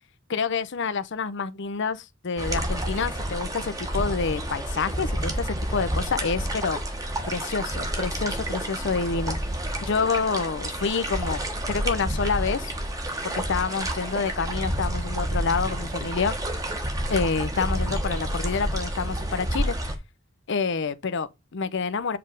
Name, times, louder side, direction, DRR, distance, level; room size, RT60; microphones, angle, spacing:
voice 1, 0.3-6.8 7.3-9.4 9.8-11.4 11.7-12.7 13.2-16.4 17.1-19.7 20.5-22.2, left 5 dB, 60° left, 0.6 m, -28 dB
sound 1, 2.4-20.0, right 1 dB, 15° right, 1.2 m, -29 dB
7.7 x 3.4 x 5.1 m
head